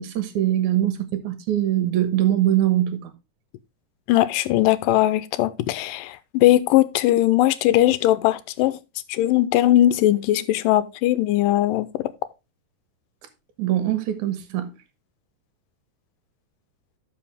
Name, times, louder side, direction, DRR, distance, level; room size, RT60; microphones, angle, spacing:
voice 1, 0.0-3.1 13.6-14.7, right 12 dB, 70° right, 2.5 m, -22 dB
voice 2, 4.1-8.8 9.1-11.9, left 14 dB, 85° left, 2.3 m, -19 dB
12.0 x 5.5 x 3.3 m
omnidirectional pair, 3.8 m